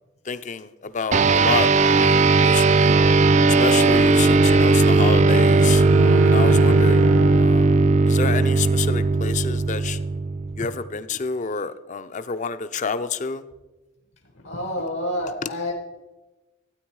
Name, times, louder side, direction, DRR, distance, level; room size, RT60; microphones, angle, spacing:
voice 1, 0.3-2.9 3.6-7.0 7.4-7.7 8.1-10.0 10.6-13.4, left 5 dB, 35° left, 13 dB, 0.5 m, -29 dB
sound 1, 1.1-10.9, right 3 dB, 35° right, 0.4 m, -17 dB
Bowed string instrument, 2.8-7.6, equal, 75° right, 0.7 m, -29 dB
voice 2, 6.5-7.0 14.4-15.7, left 1 dB, 70° left, 3 dB, 1.1 m, -29 dB
13.0 x 9.1 x 4.7 m, 1.1 s
head